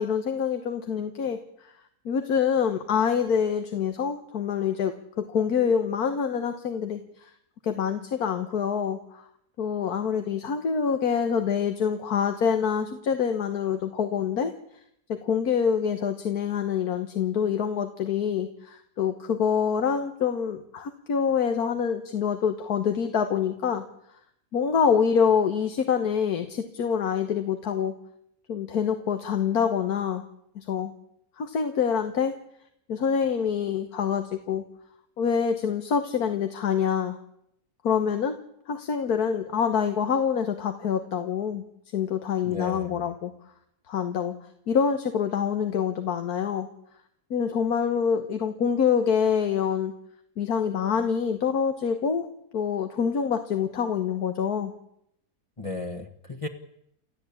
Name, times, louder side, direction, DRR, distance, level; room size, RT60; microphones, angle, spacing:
voice 1, 0.0-1.7 2.1-7.3 7.6-9.3 9.6-14.5 15.1-23.8 24.5-27.9 28.5-30.2 30.6-30.9 31.4-32.3 32.9-34.6 35.2-37.2 37.8-38.4 38.7-41.6 41.9-43.3 43.9-44.4 44.7-46.7 47.3-49.9 50.4-52.3 52.5-54.7, left 7 dB, 80° left, 7 dB, 1.8 m, -26 dB
voice 2, 42.4-43.0 55.6-56.5, left 2 dB, 20° left, 2 dB, 1.4 m, -34 dB
30.0 x 13.0 x 8.6 m, 0.75 s
omnidirectional pair, 1.6 m